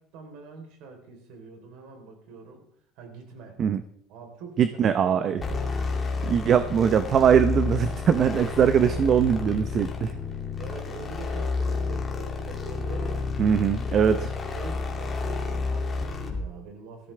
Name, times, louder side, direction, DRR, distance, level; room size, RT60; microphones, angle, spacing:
voice 1, 0.0-2.7 3.0-3.6 4.1-5.6 10.6-13.2 14.0-17.1, right 4 dB, 75° right, 4 dB, 3.7 m, -44 dB
voice 2, 4.6-5.4 6.2-10.1 13.4-14.2, right 8 dB, 40° right, 11 dB, 0.7 m, -21 dB
sound 1, 5.4-16.5, left 4 dB, 25° left, 2.5 m, -30 dB
18.0 x 14.0 x 3.4 m, 0.68 s
cardioid pair, 130°, 0 cm